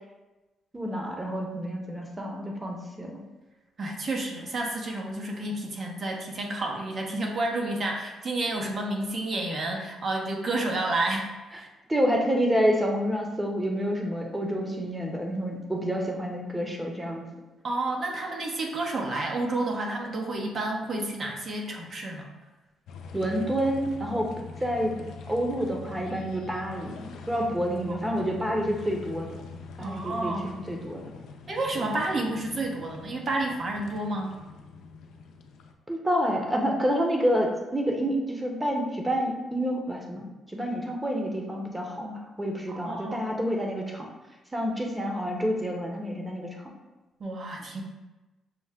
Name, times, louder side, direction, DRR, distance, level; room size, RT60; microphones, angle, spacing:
voice 1, 0.7-3.2 11.9-17.2 23.1-24.3 24.6-25.0 25.3-29.4 29.8-31.0 31.8-31.9 35.9-42.1 42.4-44.1 44.5-46.5, equal, 15° right, 1 dB, 1.0 m, -28 dB
voice 2, 3.8-11.7 17.6-22.3 27.9-28.0 29.8-30.5 31.5-34.4 42.0-42.2 42.7-43.4 47.2-47.8, right 2 dB, 50° right, 1 dB, 0.9 m, -30 dB
sound 1, 22.9-35.7, left 4 dB, 75° left, 0.4 m, -44 dB
6.1 x 2.1 x 3.6 m, 1.1 s
supercardioid pair, 60°, 0 cm